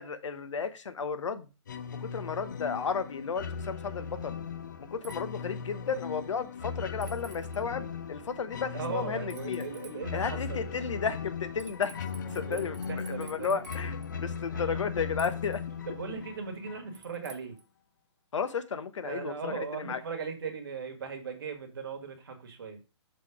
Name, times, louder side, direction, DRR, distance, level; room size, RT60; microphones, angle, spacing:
voice 1, 0.0-1.5 1.9-4.4 4.8-9.6 10.1-15.6 18.3-20.0, left 6 dB, 80° left, 0.9 m, -33 dB
sound 1, 1.7-17.2, left 6 dB, 40° left, 0.4 m, -38 dB
sound 2, 5.0-5.2 7.0-7.6 9.3-10.0 11.6-14.1 15.2-15.6 16.9-17.6, right 7 dB, 85° right, 1.3 m, -51 dB
voice 2, 8.7-10.7 12.3-13.6 14.5-14.6 15.9-17.6 19.0-22.8, right 5 dB, 50° right, 1.6 m, -38 dB
6.4 x 3.9 x 4.7 m
hypercardioid pair, 180°, 15 cm